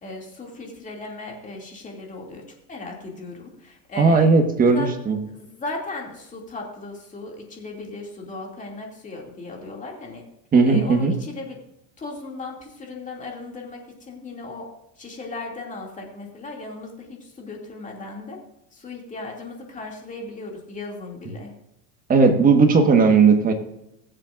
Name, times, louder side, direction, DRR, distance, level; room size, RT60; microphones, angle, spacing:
voice 1, 0.0-4.9 5.3-10.2 10.6-11.6 12.0-14.7 15.0-18.4 18.7-21.5, left 2 dB, 20° left, 0 dB, 2.6 m, -37 dB
voice 2, 4.0-5.2 10.5-11.1 22.1-23.5, right 4 dB, 20° right, 4 dB, 1.6 m, -16 dB
21.0 x 7.6 x 2.6 m, 0.86 s
supercardioid pair, 135°, 39 cm